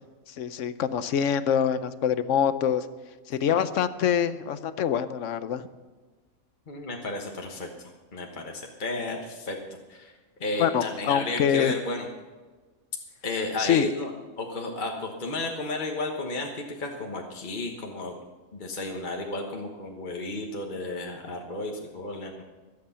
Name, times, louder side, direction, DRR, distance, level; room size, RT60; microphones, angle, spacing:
voice 1, 0.4-2.8 3.3-5.7 10.6-11.7 13.6-13.9, left 8 dB, 65° left, 13 dB, 1.0 m, -25 dB
voice 2, 6.7-9.6 9.9-10.1 10.4-12.1 13.2-14.1 14.4-18.2 18.5-22.4, left 2 dB, 35° left, 1 dB, 1.4 m, -33 dB
22.0 x 8.5 x 5.7 m, 1.3 s
omnidirectional pair, 1.5 m